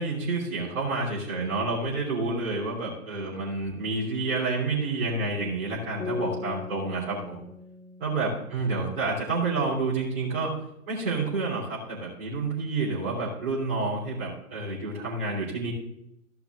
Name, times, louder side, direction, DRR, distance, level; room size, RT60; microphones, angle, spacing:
voice 1, 0.0-7.5 8.0-10.5 10.9-15.7, right 3 dB, 40° right, -8 dB, 3.3 m, -29 dB
sound 1, 6.0-9.5, left 4 dB, 5° left, 1.4 m, -39 dB
14.5 x 5.8 x 3.7 m, 0.78 s
figure-of-eight pair, 125°, 43 cm